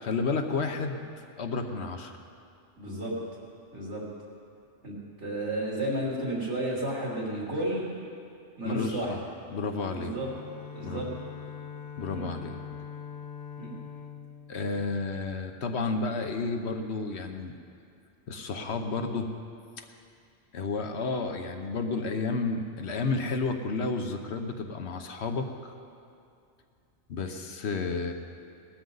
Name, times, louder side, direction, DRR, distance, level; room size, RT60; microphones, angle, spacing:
voice 1, 0.0-1.0 1.4-2.2 8.6-9.2 9.5-10.2 10.8-11.1 12.0-12.6 14.5-17.5 18.3-19.3 19.8-19.9 20.5-25.7 27.1-28.1, left 3 dB, 65° left, 5 dB, 1.1 m, -31 dB
voice 2, 2.8-3.1 3.7-4.0 4.8-7.9 8.6-9.1 9.9-10.3 10.7-11.1 12.1-12.3 13.6-13.8, right 1 dB, 70° right, -5 dB, 3.7 m, -32 dB
Bowed string instrument, 9.9-15.6, left 7 dB, 45° left, 0.8 m, -43 dB
18.5 x 13.0 x 4.0 m, 2.5 s
omnidirectional pair, 1.2 m